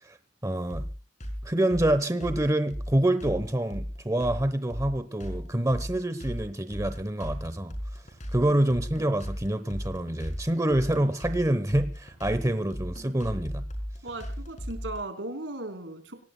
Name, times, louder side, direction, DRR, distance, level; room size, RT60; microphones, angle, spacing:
voice 1, 0.4-0.9 1.4-7.7 8.3-13.7, right 1 dB, 15° right, 0.9 m, -26 dB
sound 1, 0.7-15.0, equal, 40° left, 5.1 m, -36 dB
voice 2, 14.0-16.1, right 2 dB, 85° right, 3.7 m, -37 dB
26.0 x 17.5 x 2.2 m
head